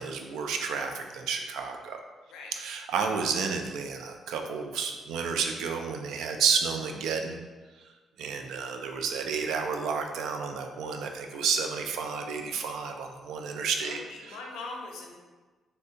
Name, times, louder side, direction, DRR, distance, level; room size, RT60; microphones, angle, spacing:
voice 1, 0.0-2.0 2.5-7.4 7.8-7.9 8.2-14.0 14.3-14.4, right 5 dB, 85° right, 4 dB, 0.3 m, -31 dB
voice 2, 13.8-15.2, left 3 dB, 90° left, 0 dB, 0.5 m, -41 dB
3.2 x 2.7 x 2.8 m, 1.3 s
cardioid pair, 90°, 0 cm